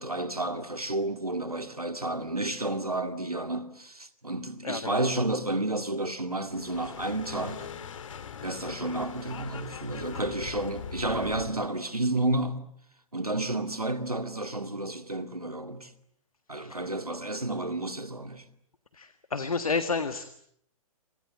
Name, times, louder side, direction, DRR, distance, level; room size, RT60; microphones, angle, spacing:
voice 1, 0.0-7.7 8.4-12.6 13.1-15.9 16.5-18.4, right 2 dB, 90° right, 2.2 m, -31 dB
voice 2, 4.6-5.0 16.5-16.8 18.9-20.3, left 4 dB, 75° left, 1.8 m, -31 dB
sound 1, 6.4-11.6, left 7 dB, 60° left, 2.6 m, -41 dB
28.0 x 26.0 x 7.9 m
figure-of-eight pair, 115°, 19 cm